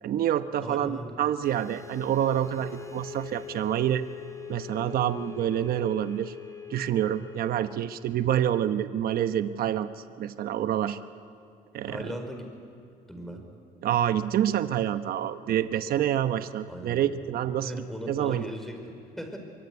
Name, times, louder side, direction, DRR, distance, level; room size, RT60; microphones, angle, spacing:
voice 1, 0.0-4.0 4.5-6.3 6.7-9.9 10.2-11.0 11.7-12.1 13.8-18.4, right 11 dB, 60° right, 10 dB, 1.1 m, -27 dB
voice 2, 0.6-1.1 11.9-12.5 13.1-13.4 15.5-15.6 16.7-17.1 17.6-19.4, equal, ahead, 4 dB, 5.0 m, -38 dB
sound 1, 1.4-9.1, left 9 dB, 20° left, 2.9 m, -43 dB
24.0 x 23.5 x 9.7 m, 2.5 s
cardioid pair, 110°, 17 cm